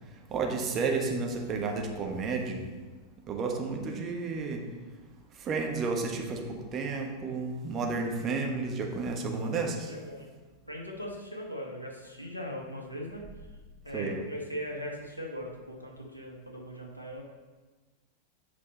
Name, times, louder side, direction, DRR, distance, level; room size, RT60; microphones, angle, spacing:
voice 1, 0.1-2.7 3.3-4.7 5.3-9.9 13.9-14.2, right 4 dB, 30° right, 2 dB, 1.3 m, -32 dB
voice 2, 9.4-10.3 10.7-13.2 13.8-17.2, equal, 85° left, -1 dB, 1.4 m, -39 dB
8.4 x 5.4 x 4.1 m, 1.3 s
figure-of-eight pair, 90°, 0 cm